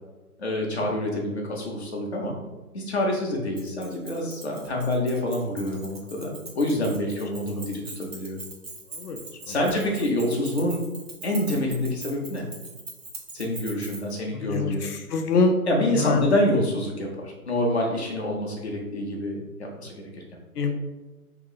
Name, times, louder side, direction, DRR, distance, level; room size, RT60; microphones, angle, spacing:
voice 1, 0.4-2.3 2.7-8.4 9.5-10.8 11.2-12.5 13.3-14.9 15.7-20.0, left 1 dB, 45° left, -1 dB, 0.7 m, -27 dB
Keys jangling, 3.5-14.2, right 2 dB, 45° right, 0.6 m, -42 dB
voice 2, 14.5-15.6 16.0-16.2 20.6-20.8, left 4 dB, 85° left, 5 dB, 0.6 m, -24 dB
2.9 x 2.5 x 3.7 m, 1.1 s
hypercardioid pair, 175°, 45 cm